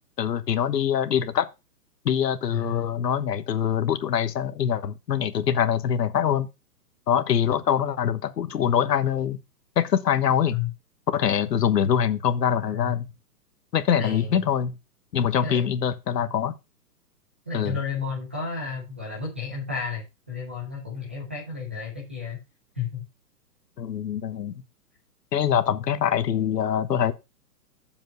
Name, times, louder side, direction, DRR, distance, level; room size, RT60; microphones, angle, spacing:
voice 1, 0.2-1.5 2.0-6.5 7.1-9.4 9.8-10.5 11.1-13.1 13.7-14.7 15.1-16.5 17.5-17.8 23.8-24.6 25.3-27.1, left 8 dB, 75° left, 1.3 m, -24 dB
voice 2, 2.5-2.8 10.5-10.7 12.7-13.0 13.9-14.5 15.4-15.7 16.2-16.3 17.5-22.4 22.7-23.0, left 5 dB, 10° right, 0.7 m, -32 dB
7.4 x 5.3 x 6.3 m
hypercardioid pair, 180°, 49 cm